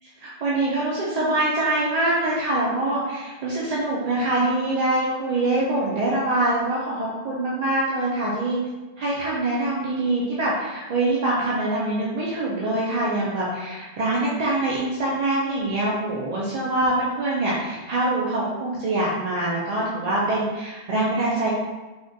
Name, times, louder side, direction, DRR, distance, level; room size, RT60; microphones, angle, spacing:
voice 1, 0.2-8.6 9.0-21.5, right 2 dB, 55° right, -6 dB, 0.4 m, -24 dB
3.5 x 2.4 x 2.6 m, 1.2 s
omnidirectional pair, 1.1 m